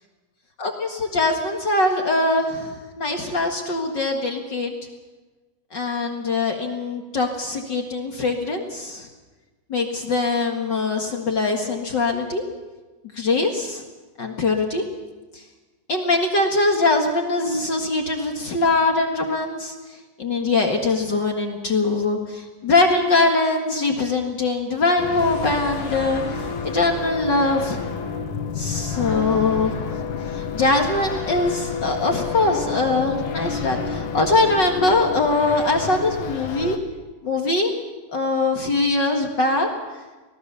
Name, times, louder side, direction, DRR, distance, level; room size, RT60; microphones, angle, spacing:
voice 1, 0.6-4.7 5.7-9.1 9.7-12.4 13.1-13.8 14.2-14.8 15.3-15.4 15.9-19.7 20.2-27.8 28.5-36.8 37.2-37.7 38.1-39.7, left 3 dB, 45° left, 3 dB, 1.5 m, -22 dB
sound 1, 25.0-36.8, left 6 dB, 60° left, 2.8 m, -30 dB
sound 2, 25.2-29.0 29.2-29.3, right 2 dB, 60° right, 7.3 m, -43 dB
25.5 x 18.5 x 6.9 m, 1.2 s
omnidirectional pair, 4.4 m